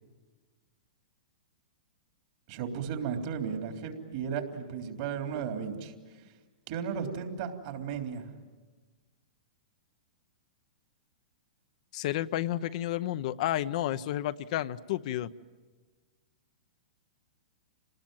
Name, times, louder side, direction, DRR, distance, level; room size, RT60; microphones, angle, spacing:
voice 1, 2.5-5.9 6.7-8.3, right 7 dB, 55° right, 4 dB, 3.5 m, -35 dB
voice 2, 11.9-15.3, left 13 dB, 55° left, 12 dB, 0.7 m, -31 dB
27.5 x 19.5 x 9.1 m, 1.4 s
hypercardioid pair, 130°, 4 cm